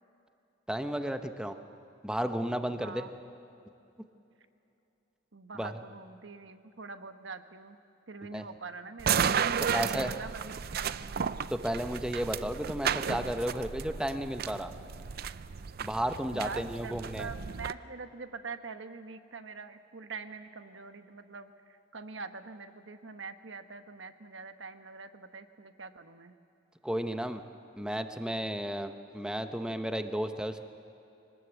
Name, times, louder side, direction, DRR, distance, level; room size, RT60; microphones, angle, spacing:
voice 1, 0.7-1.6 2.0-3.1 5.5-5.7 8.3-8.4 9.7-10.1 11.5-14.7 15.8-17.3 26.8-27.4 27.8-30.6, equal, 5° right, 7 dB, 1.0 m, -33 dB
voice 2, 2.8-3.1 5.3-7.8 8.1-9.4 9.7-11.3 16.3-26.4, right 4 dB, 80° right, 9 dB, 1.2 m, -44 dB
sound 1, 9.0-17.7, right 7 dB, 55° right, 0.5 m, -33 dB
24.0 x 19.5 x 8.2 m, 2.8 s
head